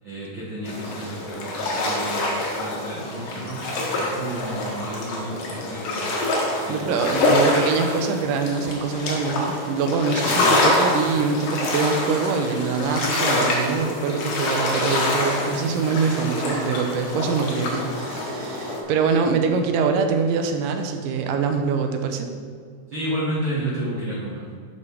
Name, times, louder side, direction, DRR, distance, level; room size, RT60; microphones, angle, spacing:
voice 1, 0.0-2.3 2.5-3.6 4.0-6.1 6.6-7.0 10.2-10.6 22.9-24.4, right 1 dB, 55° right, -7 dB, 1.4 m, -31 dB
sound 1, 0.7-18.8, left 1 dB, 90° left, 3.0 m, -25 dB
voice 2, 6.7-22.3, right 5 dB, 80° right, 5 dB, 2.2 m, -24 dB
6.8 x 5.5 x 4.7 m, 2.1 s
omnidirectional pair, 3.9 m